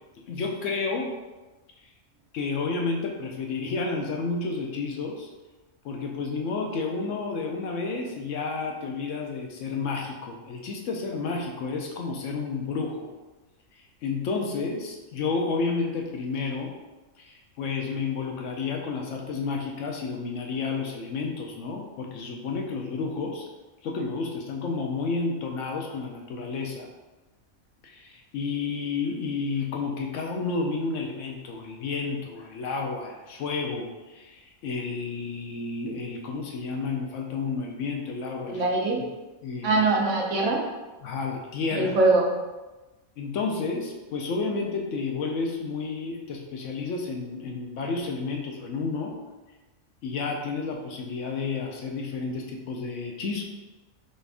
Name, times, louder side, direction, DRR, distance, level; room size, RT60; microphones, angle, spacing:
voice 1, 0.2-1.1 2.3-5.3 5.8-13.1 14.0-16.7 17.2-23.5 23.8-26.9 27.8-38.6 39.4-39.8 41.0-42.0 43.2-49.2 50.0-53.4, left 4 dB, 70° left, 1 dB, 0.9 m, -31 dB
voice 2, 38.5-39.0 39.6-40.7 41.7-42.3, right 2 dB, 65° right, 0 dB, 0.9 m, -22 dB
4.2 x 2.5 x 3.4 m, 1.1 s
omnidirectional pair, 1.4 m